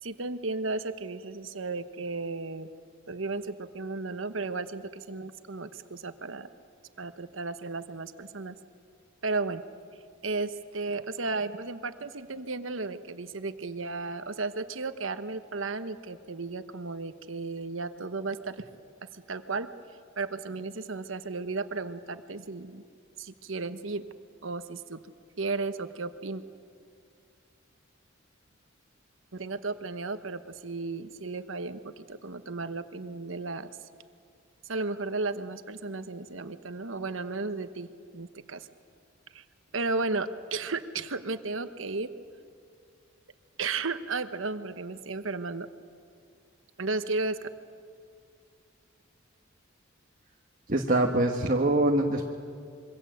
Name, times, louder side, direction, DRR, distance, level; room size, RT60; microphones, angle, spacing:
voice 1, 0.0-2.7 3.1-6.5 7.0-8.5 9.2-9.6 10.2-18.6 19.1-19.7 20.2-22.8 23.2-24.1 24.4-25.0 25.4-26.4 29.3-33.7 34.6-37.9 38.1-38.7 39.3-39.4 39.7-42.1 43.6-45.7 46.8-47.5, right 3 dB, 70° right, 10 dB, 1.2 m, -34 dB
voice 2, 50.7-52.2, right 1 dB, 45° right, 1 dB, 1.4 m, -24 dB
26.0 x 23.5 x 7.9 m, 2.3 s
head